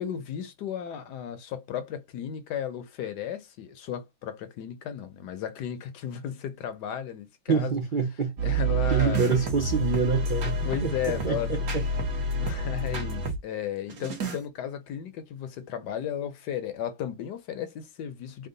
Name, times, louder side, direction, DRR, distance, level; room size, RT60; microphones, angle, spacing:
voice 1, 0.0-7.8 8.4-9.3 10.6-11.5 12.3-18.5, left 9 dB, 70° left, 1.2 m, -34 dB
voice 2, 7.5-8.3 8.9-11.8, right 5 dB, 70° right, 0.4 m, -26 dB
sound 1, 8.4-13.4 13.9-14.4, right 2 dB, 55° right, 1.3 m, -29 dB
3.6 x 2.2 x 3.7 m
omnidirectional pair, 2.0 m